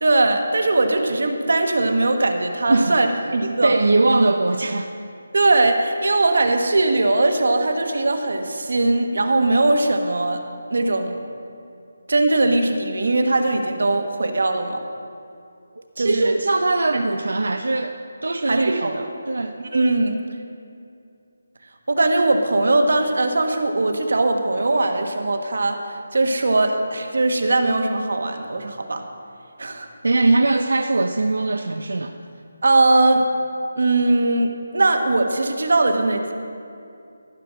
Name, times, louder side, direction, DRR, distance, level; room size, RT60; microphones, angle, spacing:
voice 1, 0.0-3.7 5.3-10.4 10.7-11.1 12.1-14.8 16.0-16.4 16.9-17.0 18.5-19.0 19.7-20.2 21.9-25.8 26.1-29.0 29.6-29.9 32.6-33.3 33.8-36.3, right 2 dB, 65° right, 5 dB, 1.2 m, -20 dB
voice 2, 2.7-3.0 3.5-4.9 16.0-19.6 30.0-32.1, right 2 dB, 85° right, 6 dB, 0.6 m, -21 dB
14.0 x 6.0 x 6.3 m, 2.5 s
figure-of-eight pair, 175°, 0 cm